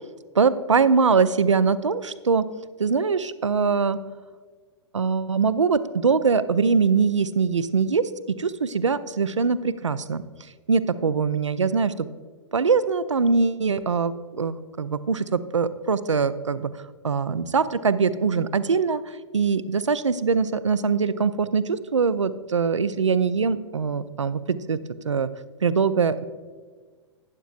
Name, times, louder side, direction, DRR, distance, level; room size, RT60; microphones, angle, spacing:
voice 1, 0.3-2.4 2.8-4.0 4.9-8.1 8.4-10.2 10.7-12.1 12.5-16.7 17.0-24.8 25.0-25.3 25.6-26.2, right 5 dB, 85° right, 14 dB, 0.5 m, -22 dB
12.0 x 9.9 x 2.5 m, 1.5 s
figure-of-eight pair, 105°, 15 cm